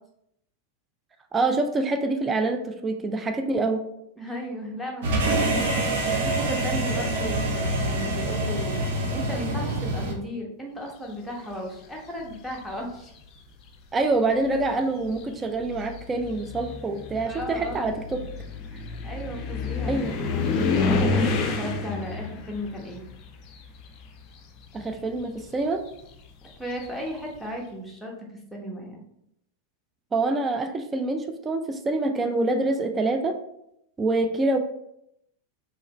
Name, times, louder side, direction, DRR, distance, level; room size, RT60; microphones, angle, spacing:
voice 1, 1.3-3.8 13.9-18.2 19.9-20.1 24.7-25.8 30.1-33.3 34.0-34.6, right 2 dB, 20° right, 6 dB, 0.4 m, -26 dB
voice 2, 4.2-8.8 9.1-13.1 17.2-18.0 18.7-23.0 26.6-29.0, equal, ahead, -2 dB, 1.0 m, -35 dB
sound 1, 5.0-10.1, right 2 dB, 55° right, 0.8 m, -26 dB
sound 2, 12.2-12.7 13.7-13.8 14.4-24.3 24.6-27.2, left 4 dB, 35° left, 0.5 m, -30 dB
4.7 x 3.0 x 3.0 m, 0.78 s
figure-of-eight pair, 90°, 0 cm